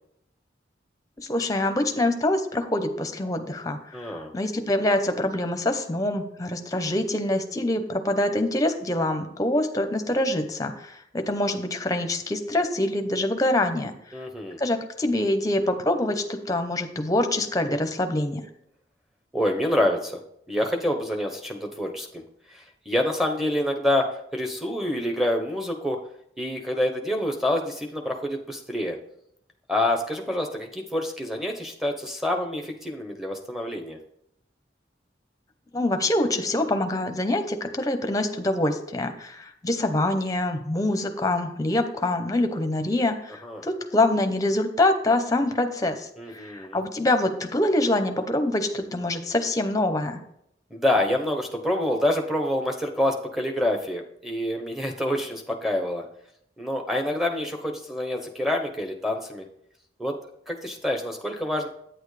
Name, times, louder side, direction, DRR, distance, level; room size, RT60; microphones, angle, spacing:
voice 1, 1.3-13.9 14.6-18.4 35.7-50.2, left 1 dB, 20° left, 7 dB, 0.8 m, -25 dB
voice 2, 3.9-4.3 14.1-14.6 19.3-20.2 20.5-22.2 22.5-24.1 24.3-26.0 26.4-29.0 29.7-34.0 43.4-43.6 46.2-46.8 50.7-56.0 56.6-59.4 60.0-60.1 60.5-61.7, left 1 dB, ahead, 2 dB, 0.9 m, -27 dB
9.0 x 8.9 x 3.3 m, 0.75 s
head